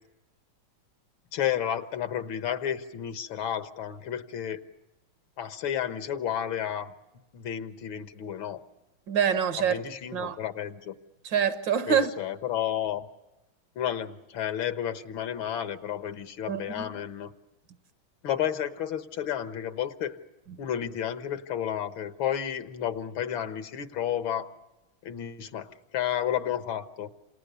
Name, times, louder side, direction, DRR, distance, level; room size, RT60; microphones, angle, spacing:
voice 1, 1.3-4.6 5.4-6.9 7.3-8.6 9.6-11.0 11.9-13.1 13.8-17.3 18.2-20.2 20.6-24.5 25.0-27.1, left 10 dB, 75° left, 2.0 m, -31 dB
voice 2, 9.1-9.8 10.1-10.4 11.2-12.1 16.5-16.9, right 7 dB, 65° right, 1.8 m, -25 dB
28.0 x 27.5 x 6.8 m
omnidirectional pair, 2.2 m